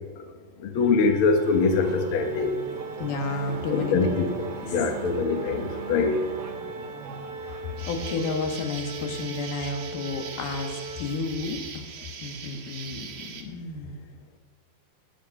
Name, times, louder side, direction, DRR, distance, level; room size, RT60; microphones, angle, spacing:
voice 1, 0.6-2.6 3.7-4.3 4.6-6.2, left 4 dB, 70° left, 5 dB, 1.3 m, -23 dB
Organ, 0.7-11.6, right 2 dB, 10° right, 0.9 m, -40 dB
Race car auto racing / Accelerating revving vroom, 1.3-8.5, right 6 dB, 80° right, 3.1 m, -40 dB
voice 2, 3.0-4.1 4.6-4.9 7.4-11.9 12.2-14.0, left 3 dB, 85° left, 3 dB, 3.4 m, -32 dB
Insect, 7.8-13.4, right 6 dB, 55° right, 2.5 m, -41 dB
20.5 x 7.8 x 5.4 m, 1.5 s
omnidirectional pair, 4.3 m